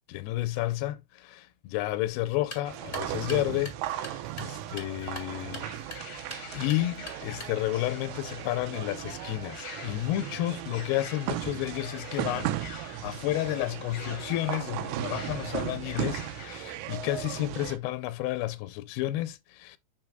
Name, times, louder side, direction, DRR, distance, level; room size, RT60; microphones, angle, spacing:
voice 1, 0.1-5.7 6.0-19.8, left 15 dB, 90° left, 2.6 m, -31 dB
sound 1, 2.3-7.8, left 3 dB, 35° left, 0.8 m, -46 dB
sound 2, 2.7-17.8, right 13 dB, 85° right, 2.6 m, -36 dB
sound 3, 5.0-16.6, left 6 dB, 60° left, 1.4 m, -47 dB
8.8 x 6.3 x 2.2 m
omnidirectional pair, 4.4 m